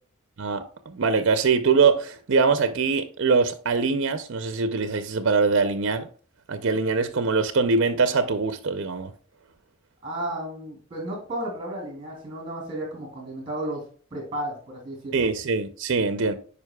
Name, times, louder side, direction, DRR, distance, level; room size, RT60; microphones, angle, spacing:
voice 1, 0.4-6.1 6.5-9.1 15.1-16.3, right 4 dB, 60° right, 0.5 m, -23 dB
voice 2, 10.0-13.8 14.1-15.2, right 1 dB, 25° right, 3.0 m, -33 dB
9.4 x 5.0 x 2.3 m
head